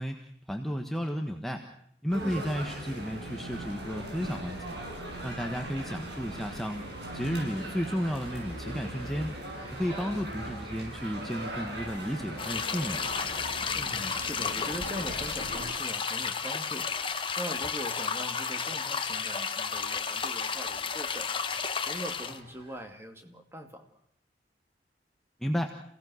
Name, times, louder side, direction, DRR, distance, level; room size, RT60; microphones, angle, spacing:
voice 1, 0.0-1.6 2.0-4.8 5.2-6.8 7.1-9.3 9.7-13.0 25.4-25.8, equal, ahead, 3 dB, 1.4 m, -33 dB
sound 1, 2.1-15.7, right 1 dB, 75° right, 7.2 m, -40 dB
voice 2, 2.2-2.5 9.8-10.1 13.7-16.9 17.4-21.3 21.8-24.0, equal, 15° right, 5 dB, 2.4 m, -41 dB
sound 2, 6.3-22.8, right 1 dB, 35° right, 7.4 m, -53 dB
sound 3, 12.4-22.4, left 6 dB, 30° left, 1.3 m, -32 dB
28.0 x 17.5 x 6.3 m, 0.71 s
head